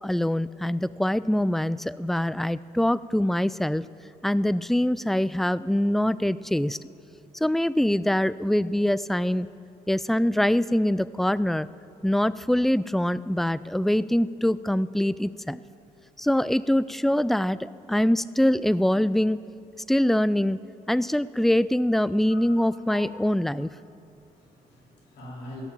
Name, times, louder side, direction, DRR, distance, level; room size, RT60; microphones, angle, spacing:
voice 1, 0.0-3.8 4.2-6.8 7.4-9.5 9.9-11.7 12.0-15.6 16.2-19.4 19.9-20.6 20.9-23.7, left 1 dB, ahead, 17 dB, 0.3 m, -24 dB
voice 2, 24.1-25.6, left 2 dB, 75° left, -3 dB, 3.8 m, -44 dB
15.5 x 7.2 x 8.8 m, 2.6 s
supercardioid pair, 65°, 17 cm